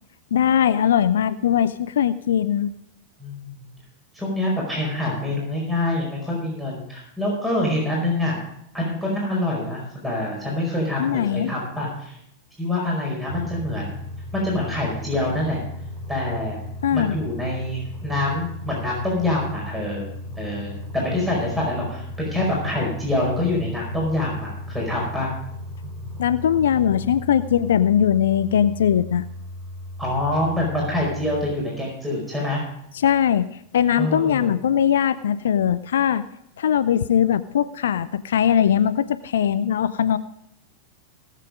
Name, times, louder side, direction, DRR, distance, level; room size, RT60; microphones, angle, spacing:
voice 1, 0.3-2.7 11.0-11.5 16.8-17.2 26.2-29.3 33.0-33.5 33.7-36.2 36.6-40.2, left 9 dB, 60° left, 14 dB, 0.5 m, -20 dB
voice 2, 3.2-3.7 4.1-8.4 8.7-12.2 12.6-14.1 14.3-15.6 16.1-16.6 16.9-20.0 20.4-25.3 30.0-32.6 34.0-34.6, left 1 dB, 5° right, -2 dB, 5.0 m, -26 dB
sound 1, 13.3-31.6, left 1 dB, 25° right, 2.8 m, -36 dB
18.0 x 7.5 x 5.1 m, 0.77 s
figure-of-eight pair, 90°, 0 cm